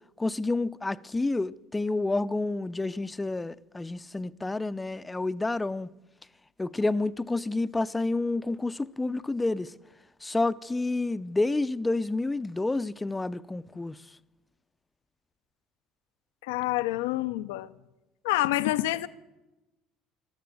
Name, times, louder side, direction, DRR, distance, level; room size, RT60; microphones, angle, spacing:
voice 1, 0.2-5.9 6.6-9.7 10.2-14.0, left 2 dB, 15° left, 0.6 m, -29 dB
voice 2, 16.4-17.7 18.2-19.1, left 16 dB, 85° left, 0.6 m, -27 dB
14.5 x 12.5 x 7.7 m
supercardioid pair, 75°, 0 cm